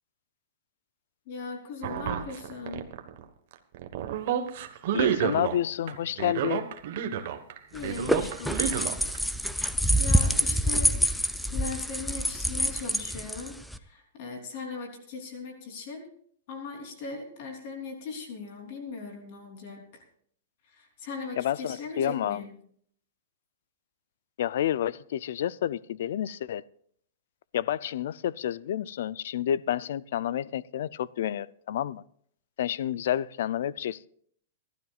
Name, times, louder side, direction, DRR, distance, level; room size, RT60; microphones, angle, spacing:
voice 1, 1.2-2.9 7.7-9.0 10.0-11.1 11.5-16.1 16.5-20.0 20.6-22.5, left 4 dB, 45° left, 3.4 m, -39 dB
sound 1, 1.8-3.2 3.5-5.6 5.9-7.6 7.8-9.2, right 9 dB, 50° right, 1.3 m, -30 dB
voice 2, 4.9-6.7 21.4-22.4 24.4-26.6 27.5-32.0 32.6-34.1, left 11 dB, 60° left, 0.4 m, -29 dB
sound 2, 7.7-13.8, equal, ahead, 0.4 m, -26 dB
27.0 x 12.5 x 2.4 m
supercardioid pair, 170°, 0 cm